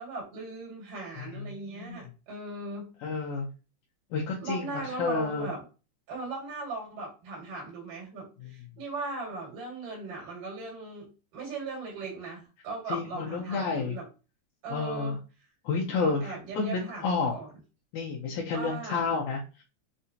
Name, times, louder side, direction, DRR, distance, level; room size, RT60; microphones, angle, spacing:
voice 1, 0.0-2.9 4.4-5.6 6.1-14.1 14.6-15.2 16.0-17.5 18.5-19.0, right 3 dB, 80° right, -1 dB, 3.5 m, -38 dB
voice 2, 1.2-2.0 3.0-3.5 4.1-5.5 8.4-8.5 12.9-14.0 14.7-15.2 15.6-17.3 17.9-19.6, left 4 dB, 75° left, -2 dB, 2.0 m, -31 dB
6.5 x 2.7 x 2.7 m, 0.32 s
omnidirectional pair, 3.7 m